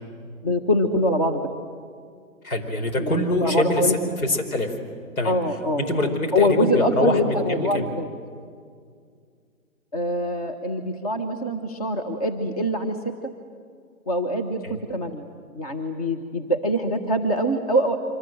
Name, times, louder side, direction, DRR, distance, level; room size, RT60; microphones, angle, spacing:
voice 1, 0.4-1.4 3.0-3.9 5.2-8.1 9.9-13.0 14.1-15.2 15.5-18.0, equal, 25° left, 6 dB, 1.1 m, -24 dB
voice 2, 2.4-3.9 4.2-4.8 5.2-5.3 5.8-7.9 14.6-14.8, left 1 dB, 75° left, 6 dB, 5.0 m, -24 dB
27.5 x 25.5 x 7.7 m, 2.1 s
hypercardioid pair, 175°, 43 cm